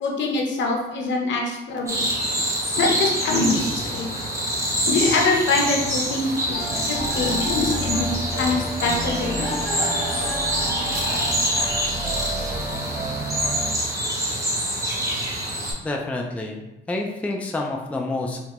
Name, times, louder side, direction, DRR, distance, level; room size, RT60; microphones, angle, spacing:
voice 1, 0.0-2.3 2.8-4.1 4.9-9.5, left 3 dB, 65° left, 0 dB, 0.7 m, -24 dB
sound 1, 1.9-15.7, right 1 dB, 15° right, 0.8 m, -26 dB
sound 2, 6.5-13.7, equal, 90° right, 1.0 m, -30 dB
voice 2, 15.8-18.4, left 2 dB, 5° left, 1 dB, 0.3 m, -28 dB
2.9 x 2.2 x 2.9 m, 0.98 s
cardioid pair, 90°, 20 cm